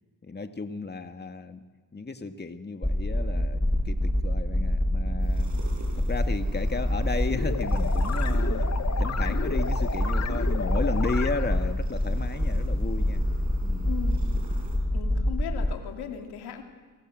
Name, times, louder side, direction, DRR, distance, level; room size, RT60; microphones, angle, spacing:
voice 1, 0.2-1.6 1.9-5.5 5.9-8.7 9.0-13.2 13.6-13.9, left 3 dB, 25° left, 7 dB, 2.2 m, -34 dB
sound 1, 2.8-15.8, left 1 dB, 5° left, 1.9 m, -26 dB
sound 2, 5.2-14.8, right 3 dB, 50° right, 7.5 m, -48 dB
sound 3, 7.3-11.7, left 6 dB, 45° left, 2.0 m, -34 dB
voice 2, 13.8-14.2 14.9-16.6, left 8 dB, 85° left, 5 dB, 2.9 m, -37 dB
29.5 x 24.5 x 7.9 m, 1.4 s
supercardioid pair, 60°, 38 cm